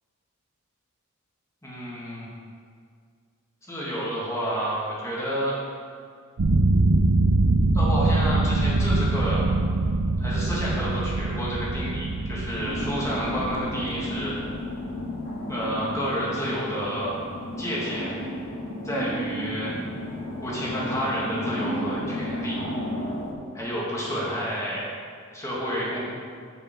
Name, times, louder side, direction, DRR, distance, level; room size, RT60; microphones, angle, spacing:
voice 1, 1.6-2.3 3.7-5.6 7.7-9.4 10.2-14.3 15.5-17.2 17.6-18.1 18.8-19.8 20.4-22.6 23.5-24.9 25.3-26.0, equal, 15° left, -6 dB, 2.0 m, -30 dB
sound 1, 6.4-14.8, right 2 dB, 85° right, 0.6 m, -23 dB
sound 2, 12.6-23.3, equal, 65° left, 1.4 m, -33 dB
10.0 x 5.7 x 4.6 m, 2.1 s
head